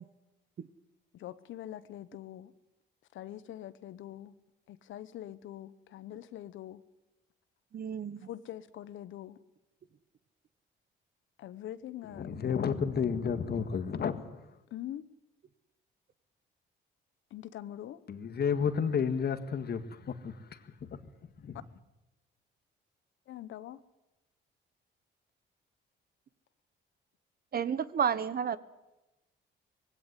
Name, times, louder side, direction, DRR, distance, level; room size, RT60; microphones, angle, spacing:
voice 1, 1.1-2.5 3.1-4.3 4.7-6.8 8.2-9.4 11.4-12.3 12.7-12.8 14.7-15.0 17.3-18.0 23.3-23.8, left 12 dB, 75° left, 0.9 m, -44 dB
voice 2, 7.7-8.2 27.5-28.6, right 7 dB, 50° right, 1.1 m, -31 dB
voice 3, 12.1-14.4 18.1-20.4 20.8-20.9 21.4-21.6, left 6 dB, 55° left, 1.7 m, -31 dB
19.5 x 17.0 x 9.8 m
cardioid pair, 90°, 20 cm